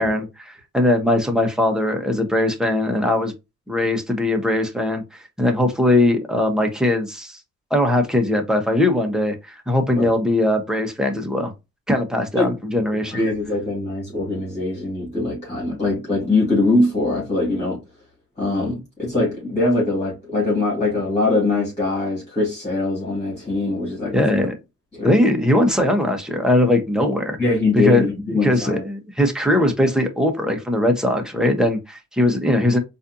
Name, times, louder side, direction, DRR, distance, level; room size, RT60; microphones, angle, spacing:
voice 1, 0.0-3.3 3.7-7.4 7.7-11.5 11.9-13.2 24.1-24.5 25.0-27.4 27.7-28.1 28.4-32.8, left 1 dB, ahead, 1.0 m, -20 dB
voice 2, 12.9-17.8 18.4-24.4 24.9-25.1 27.4-28.8, left 2 dB, 20° left, 2.3 m, -22 dB
4.1 x 2.7 x 2.7 m
cardioid pair, 90°, 30 cm